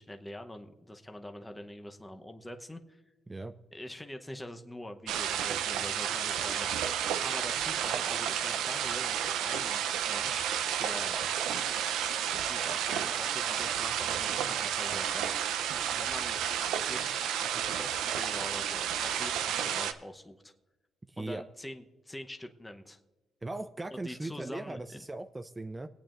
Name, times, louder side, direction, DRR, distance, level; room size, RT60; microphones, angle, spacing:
voice 1, 0.0-3.0 3.7-6.9 7.2-10.5 10.8-11.2 12.5-15.6 15.9-16.4 16.7-20.5 21.2-23.0 23.9-25.0, left 1 dB, 10° left, 5 dB, 0.8 m, -45 dB
sound 1, 5.1-19.9, right 9 dB, 90° right, 0.6 m, -31 dB
voice 2, 21.1-21.4 23.4-25.9, right 2 dB, 20° right, 9 dB, 0.5 m, -39 dB
22.0 x 8.7 x 2.5 m, 1.1 s
cardioid pair, 90°, 0 cm